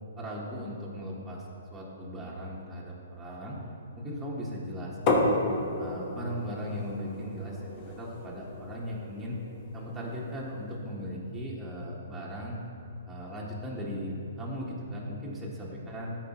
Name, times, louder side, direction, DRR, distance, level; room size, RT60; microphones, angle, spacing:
voice 1, 0.2-3.6 4.0-5.4 5.8-9.4 9.7-12.6 13.1-16.1, equal, 5° right, -7 dB, 1.3 m, -37 dB
sound 1, 5.1-10.7, left 2 dB, 35° left, 1.1 m, -32 dB
13.0 x 4.8 x 3.0 m, 2.7 s
hypercardioid pair, 140°, 0 cm